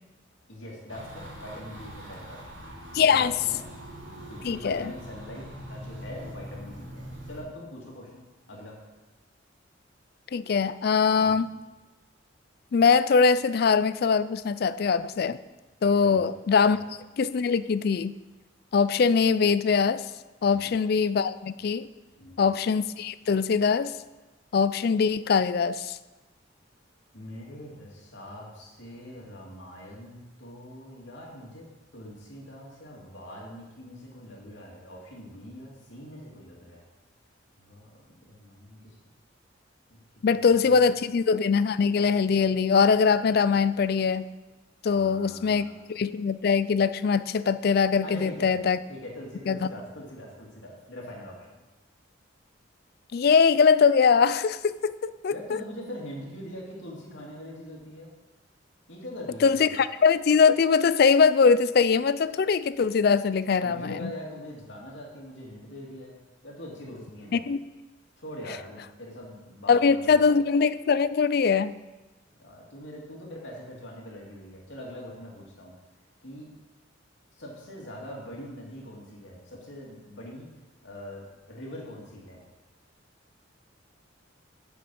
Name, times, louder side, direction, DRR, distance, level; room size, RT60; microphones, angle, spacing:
voice 1, 0.5-2.5 2.9-3.6 4.3-8.8 11.1-11.4 16.0-16.3 20.4-20.7 22.2-22.5 27.1-31.7 31.9-36.8 37.6-39.0 39.9-40.9 44.9-45.7 48.0-48.5 48.9-51.6 55.3-58.1 58.9-59.8 63.6-66.1 66.4-67.4 68.2-70.4 72.4-75.7 76.2-76.5 77.4-80.5 80.8-82.4, equal, 70° left, -3 dB, 2.4 m, -43 dB
sound 1, 0.9-7.4, equal, 75° right, 2.7 m, -43 dB
voice 2, 2.9-3.3 4.4-4.8 10.3-11.5 12.7-15.4 15.8-16.8 17.2-18.1 18.7-20.0 20.4-21.9 22.4-23.9 24.5-26.0 40.2-44.3 44.8-48.8 49.5-49.7 53.1-55.6 59.4-64.1 67.3-67.6 69.7-71.7, left 5 dB, 50° left, 16 dB, 0.3 m, -22 dB
8.5 x 6.0 x 6.2 m, 1.1 s
head